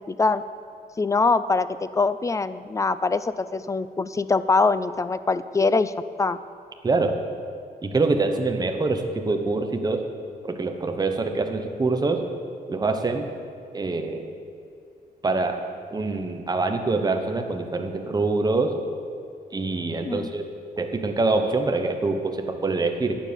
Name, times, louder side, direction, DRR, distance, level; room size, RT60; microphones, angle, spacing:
voice 1, 0.1-0.4 1.0-5.9 6.2-6.4 20.0-20.3, left 3 dB, 20° left, 15 dB, 0.3 m, -23 dB
voice 2, 6.8-7.2 7.8-10.1 10.4-12.3 12.7-13.3 13.7-14.3 15.2-15.6 15.9-18.8 19.5-20.4 20.8-23.1, right 3 dB, 25° right, 5 dB, 0.9 m, -25 dB
9.6 x 7.3 x 6.9 m, 2.4 s
cardioid pair, 115°, 17 cm